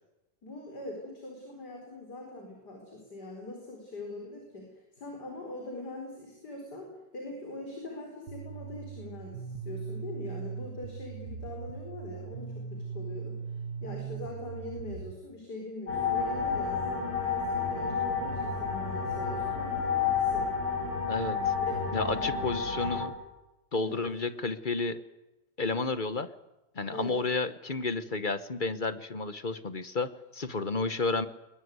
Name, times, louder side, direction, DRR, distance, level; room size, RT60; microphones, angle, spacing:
voice 1, 0.4-13.4 13.8-20.5 21.6-22.2 23.8-24.0 26.8-27.2, left 2 dB, 60° left, 2 dB, 5.2 m, -42 dB
sound 1, 8.3-15.1, right 6 dB, 50° right, 1.4 m, -40 dB
sound 2, 15.9-23.1, left 5 dB, 90° left, 7.2 m, -30 dB
voice 2, 21.0-21.5 21.9-23.1 23.7-25.0 25.6-26.3 26.7-31.3, left 3 dB, 35° left, 13 dB, 0.9 m, -31 dB
22.0 x 21.0 x 9.5 m, 0.98 s
omnidirectional pair, 2.0 m